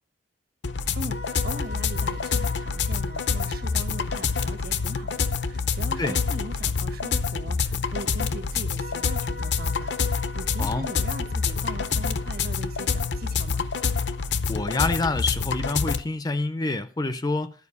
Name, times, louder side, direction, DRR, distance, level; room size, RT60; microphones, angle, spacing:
sound 1, 0.6-16.0, left 5 dB, 70° left, 0.7 m, -27 dB
voice 1, 0.9-13.7, right 1 dB, 55° right, 1.2 m, -40 dB
voice 2, 14.5-17.5, left 2 dB, 20° left, 0.5 m, -27 dB
13.0 x 4.9 x 8.4 m
head